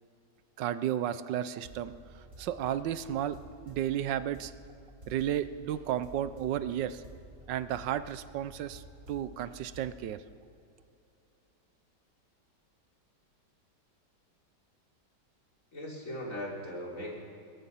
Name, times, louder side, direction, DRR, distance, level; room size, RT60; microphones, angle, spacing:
voice 1, 0.6-3.4 3.6-4.5 5.1-7.0 7.5-10.2, right 11 dB, 85° right, 14 dB, 1.4 m, -33 dB
sound 1, 1.6-10.0, right 1 dB, 50° right, 4.3 m, -52 dB
voice 2, 15.7-17.1, equal, 45° left, -3 dB, 4.2 m, -38 dB
23.5 x 20.5 x 5.7 m, 2.6 s
omnidirectional pair, 1.9 m